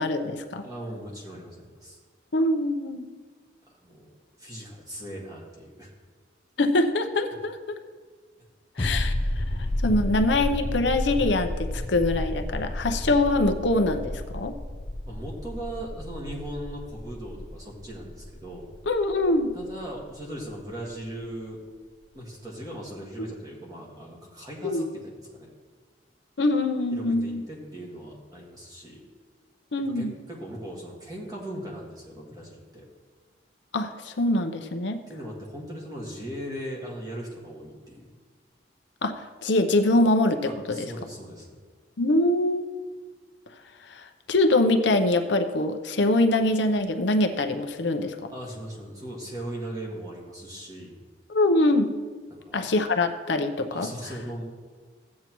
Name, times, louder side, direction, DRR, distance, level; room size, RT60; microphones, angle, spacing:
voice 1, 0.0-0.6 2.3-3.1 6.6-7.6 8.8-9.1 9.8-14.6 18.9-19.5 24.6-24.9 26.4-27.4 29.7-30.1 33.7-35.0 39.0-39.1 39.4-40.9 42.0-42.7 43.9-48.2 51.3-51.9 52.5-53.9, left 2 dB, 75° left, 7 dB, 0.7 m, -24 dB
voice 2, 0.6-2.0 3.7-4.1 4.4-5.9 15.1-18.7 19.5-21.6 22.1-25.5 26.9-29.1 30.0-32.9 35.1-38.1 40.4-41.6 48.3-51.0 52.3-52.7 53.7-54.4, right 1 dB, 20° right, -3 dB, 1.7 m, -39 dB
sound 1, 8.8-20.1 20.4-20.5, left 1 dB, 30° left, 0.4 m, -32 dB
14.5 x 8.5 x 3.0 m, 1.5 s
head